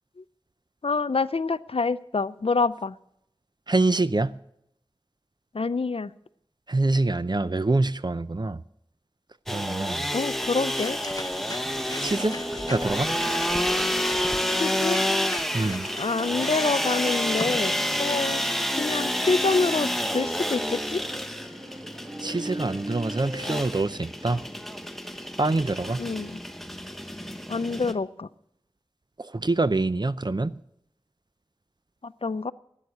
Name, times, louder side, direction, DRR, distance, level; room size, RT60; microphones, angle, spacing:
voice 1, 0.8-3.0 5.5-6.1 10.1-11.0 14.6-15.0 16.0-18.4 18.7-21.0 26.0-26.4 27.5-28.3 32.0-32.5, left 4 dB, 65° left, 0.5 m, -27 dB
voice 2, 3.7-4.3 6.7-8.6 9.5-10.1 12.0-12.3 12.7-13.1 15.5-15.9 22.2-24.4 25.4-26.0 29.2-30.5, right 2 dB, 45° right, 0.6 m, -25 dB
sound 1, 9.5-27.9, equal, ahead, 1.1 m, -29 dB
sound 2, 10.2-17.7, left 2 dB, 35° left, 0.7 m, -42 dB
sound 3, 11.3-23.6, right 1 dB, 25° right, 1.4 m, -40 dB
13.0 x 8.9 x 8.2 m
wide cardioid pair, 45°, 10 cm